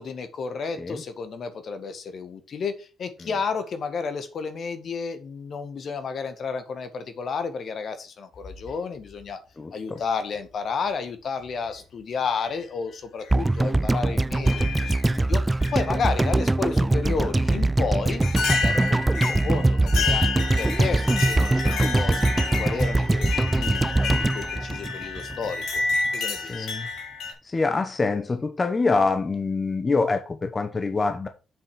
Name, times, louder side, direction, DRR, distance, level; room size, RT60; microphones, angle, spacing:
voice 1, 0.0-9.4 9.7-18.2 18.5-22.3 22.6-23.9 24.2-25.8 26.1-26.7, left 5 dB, 60° left, 1.7 m, -32 dB
sound 1, 8.4-9.2 10.4-10.5 11.5-11.8 12.4-12.5 13.2-13.3 14.5-15.2 15.6-16.4 17.5-17.6 18.2-27.3, left 4 dB, 75° left, 3.0 m, -30 dB
voice 2, 9.6-10.0 26.5-26.9 27.4-31.3, left 3 dB, 35° left, 1.1 m, -25 dB
sound 2, 13.3-25.5 25.8-25.9, right 2 dB, 20° right, 0.4 m, -22 dB
7.5 x 5.9 x 4.9 m
supercardioid pair, 55°, 0 cm